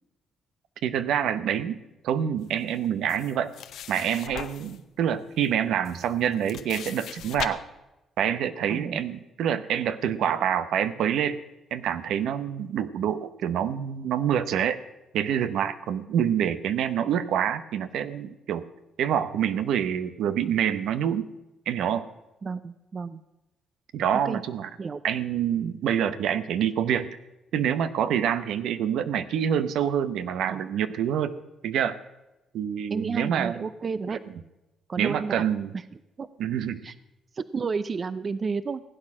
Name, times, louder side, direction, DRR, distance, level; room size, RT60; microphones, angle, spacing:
voice 1, 0.8-1.8 2.0-3.5 3.9-7.6 8.2-11.4 11.7-14.8 15.1-18.6 19.0-21.3 21.7-22.1 23.9-24.7 25.0-27.2 27.5-31.4 31.6-32.0 32.5-33.7 34.1-34.2 35.0-35.7 36.4-36.8, right 9 dB, 80° right, 12 dB, 0.8 m, -26 dB
sound 1, 3.1-4.8 5.4-5.5 5.8-7.5, left 10 dB, 75° left, 0.8 m, -38 dB
voice 2, 8.7-9.0 22.4-23.2 24.2-24.4 24.8-25.0 30.5-30.7 32.9-34.2 34.9-35.4 35.7-35.8 36.2-36.3 36.8-36.9 37.3-38.8, right 5 dB, 40° right, 14 dB, 0.5 m, -31 dB
16.5 x 8.8 x 6.1 m, 0.98 s
cardioid pair, 90°, 0 cm